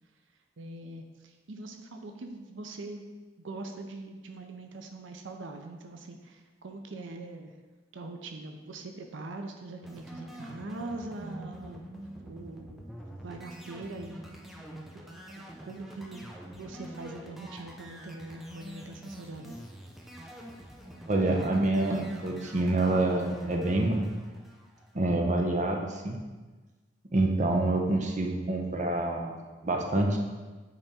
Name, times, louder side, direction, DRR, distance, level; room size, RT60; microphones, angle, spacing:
voice 1, 0.6-3.0 3.4-7.5 7.9-12.8 13.2-14.3 15.1-19.6, right 2 dB, 90° right, 4 dB, 0.6 m, -42 dB
sound 1, 9.8-25.2, right 1 dB, ahead, 0.6 m, -46 dB
voice 2, 21.1-24.1 24.9-26.2 27.1-29.4 29.6-30.2, right 2 dB, 40° right, 1 dB, 0.7 m, -27 dB
8.9 x 3.5 x 4.2 m, 1.3 s
head